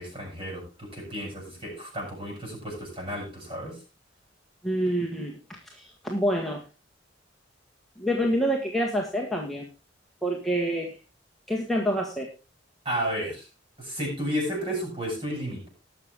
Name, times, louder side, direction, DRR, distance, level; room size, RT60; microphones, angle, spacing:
voice 1, 0.0-3.8 12.8-13.5 13.8-15.7, equal, 30° right, -1 dB, 7.8 m, -32 dB
voice 2, 4.6-6.6 8.0-9.7 10.2-11.0 11.5-12.3, equal, ahead, -1 dB, 1.5 m, -27 dB
19.5 x 6.7 x 3.5 m, 0.31 s
head